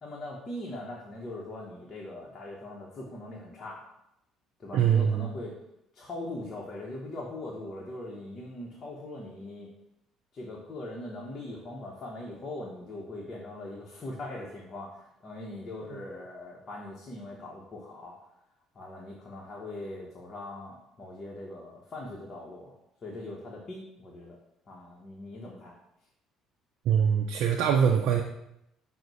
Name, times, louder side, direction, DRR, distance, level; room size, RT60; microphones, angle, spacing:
voice 1, 0.0-3.8 4.6-5.5 5.9-9.7 10.3-18.1 18.7-22.7 23.0-24.4 24.7-25.8, left 1 dB, 40° left, -3 dB, 0.8 m, -41 dB
voice 2, 4.7-5.3 26.9-28.2, right 8 dB, 70° right, 2 dB, 0.4 m, -23 dB
5.9 x 2.1 x 4.0 m, 0.81 s
supercardioid pair, 80°, 0 cm